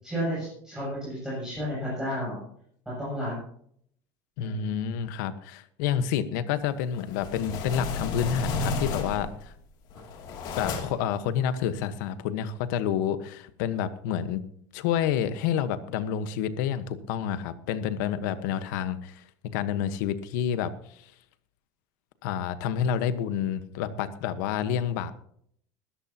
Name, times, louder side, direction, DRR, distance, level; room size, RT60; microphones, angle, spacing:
voice 1, 0.0-2.4 2.9-3.3 4.4-4.8, equal, 5° right, -8 dB, 7.5 m, -32 dB
voice 2, 4.4-9.5 10.6-14.4 14.7-19.2 19.5-21.0 22.2-25.1, left 9 dB, 85° left, 11 dB, 1.3 m, -29 dB
sound 1, 6.9-9.4 9.9-11.1, left 3 dB, 45° left, 2.7 m, -32 dB
21.0 x 13.0 x 2.9 m, 0.65 s
cardioid pair, 175°, 10 cm